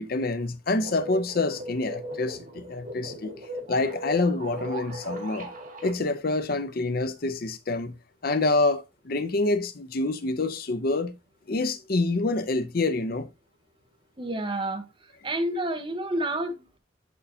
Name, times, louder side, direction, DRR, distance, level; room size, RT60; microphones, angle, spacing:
voice 1, 0.0-3.3 3.7-5.5 5.8-7.9 8.2-11.2 11.5-13.3, left 2 dB, 50° left, 0.6 m, -27 dB
sound 1, 0.8-5.9, right 1 dB, 40° right, 1.7 m, -38 dB
voice 2, 14.2-14.9 15.2-16.8, right 1 dB, 25° right, 0.9 m, -29 dB
6.8 x 6.2 x 2.7 m
head